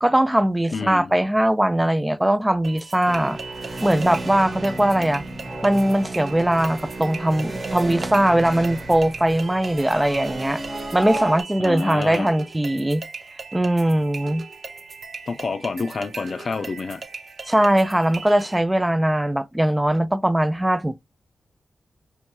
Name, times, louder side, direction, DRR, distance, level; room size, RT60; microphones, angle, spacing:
voice 1, 0.0-3.4 3.8-5.2 5.6-10.6 10.9-13.0 13.5-14.5 17.5-21.0, right 1 dB, 10° right, 0.3 m, -20 dB
voice 2, 0.7-1.1 11.6-12.3 15.3-17.0, left 4 dB, 60° left, 0.4 m, -28 dB
sound 1, 2.6-18.6, right 4 dB, 60° right, 0.7 m, -39 dB
sound 2, 3.0-11.4, right 2 dB, 40° right, 1.1 m, -32 dB
4.6 x 3.1 x 3.0 m
cardioid pair, 70°, 0 cm